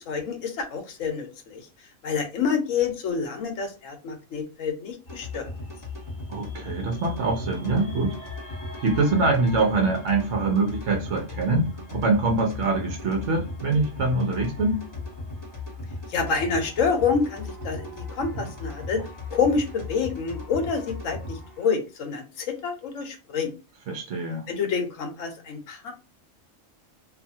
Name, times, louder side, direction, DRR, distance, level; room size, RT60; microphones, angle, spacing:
voice 1, 0.0-1.7 2.0-5.5 16.1-23.5 24.5-25.9, left 5 dB, 75° left, 1.1 m, -28 dB
Dark Tribal Drum and Atmo, 5.1-21.7, left 2 dB, 15° left, 1.4 m, -37 dB
voice 2, 6.3-8.2 8.8-14.8 18.4-18.5 23.9-24.5, right 3 dB, 65° right, 1.0 m, -24 dB
2.7 x 2.5 x 2.6 m
omnidirectional pair, 1.4 m